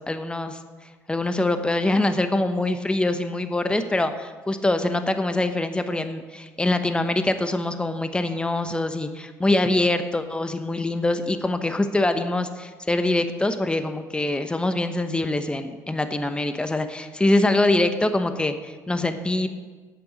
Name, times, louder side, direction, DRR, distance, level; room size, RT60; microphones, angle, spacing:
voice 1, 0.1-0.6 1.1-19.5, left 2 dB, 15° left, 9 dB, 1.0 m, -24 dB
9.0 x 6.9 x 8.1 m, 1.4 s
supercardioid pair, 80°, 7 cm